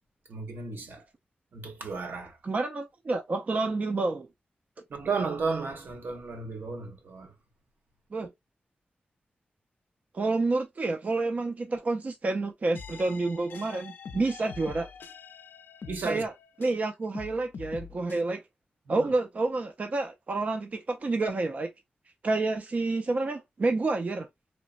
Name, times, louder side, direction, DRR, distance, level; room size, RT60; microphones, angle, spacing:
voice 1, 0.3-1.0 1.5-2.4 4.9-7.3 15.9-16.2 18.9-19.1, right 4 dB, 75° right, 0.7 m, -33 dB
voice 2, 2.4-4.3 8.1-8.3 10.1-14.9 16.0-16.3 16.6-18.4 18.9-21.7 22.2-24.3, right 3 dB, 45° right, 0.4 m, -29 dB
sound 1, 12.7-16.8 17.1-18.2, left 6 dB, 80° left, 0.4 m, -44 dB
3.1 x 2.0 x 2.4 m
wide cardioid pair, 95°, 4 cm